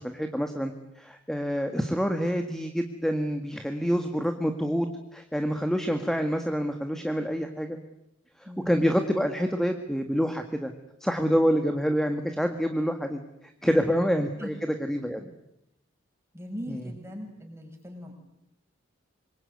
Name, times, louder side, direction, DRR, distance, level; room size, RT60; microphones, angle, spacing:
voice 1, 0.0-4.9 5.1-7.8 8.4-10.7 11.0-15.3 16.7-16.9, equal, ahead, 5 dB, 1.7 m, -27 dB
voice 2, 8.4-8.8 13.6-14.0 14.4-14.5 16.3-18.1, equal, 15° right, 2 dB, 7.3 m, -39 dB
27.0 x 23.0 x 9.6 m, 0.80 s
head